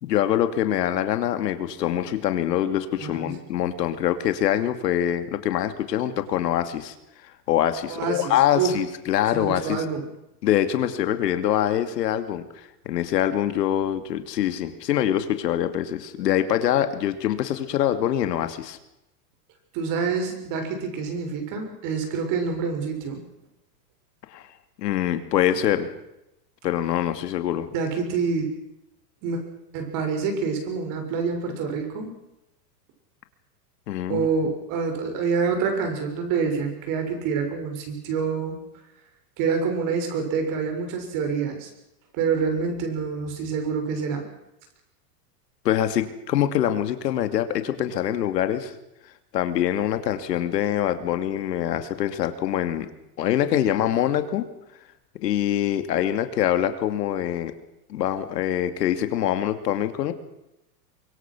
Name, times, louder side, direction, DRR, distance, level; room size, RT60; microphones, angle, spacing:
voice 1, 0.0-6.9 7.5-9.8 10.4-18.8 24.3-24.5 24.8-25.9 26.6-27.7 33.9-34.3 45.6-48.7 49.3-52.9 53.2-54.5 55.2-57.5 57.9-60.1, left 11 dB, 80° left, 9 dB, 2.7 m, -24 dB
voice 2, 3.0-3.3 7.9-8.7 9.3-10.1 19.7-23.2 27.7-28.5 29.2-29.4 29.7-32.1 34.1-38.6 39.4-41.7 42.1-44.2, right 5 dB, 40° right, 5 dB, 6.6 m, -27 dB
24.5 x 22.5 x 6.2 m, 0.88 s
supercardioid pair, 150°, 48 cm